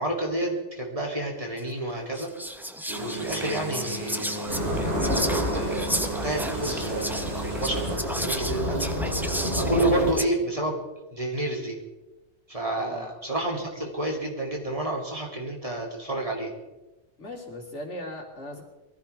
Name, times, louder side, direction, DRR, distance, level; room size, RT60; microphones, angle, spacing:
voice 1, 0.0-2.3 2.9-4.7 5.5-8.9 9.5-10.8 11.1-11.8 12.5-16.5, right 1 dB, 30° right, -1 dB, 3.1 m, -30 dB
Whispering, 1.6-1.7 2.1-10.3, equal, ahead, 0.5 m, -33 dB
sound 1, 2.9-8.0, right 2 dB, 80° right, 2.1 m, -36 dB
sound 2, 4.5-10.1, equal, 60° right, 3.8 m, -29 dB
voice 2, 12.7-13.1 17.2-18.6, left 1 dB, 75° left, 0 dB, 3.0 m, -38 dB
23.0 x 15.0 x 3.5 m, 1.1 s
omnidirectional pair, 1.2 m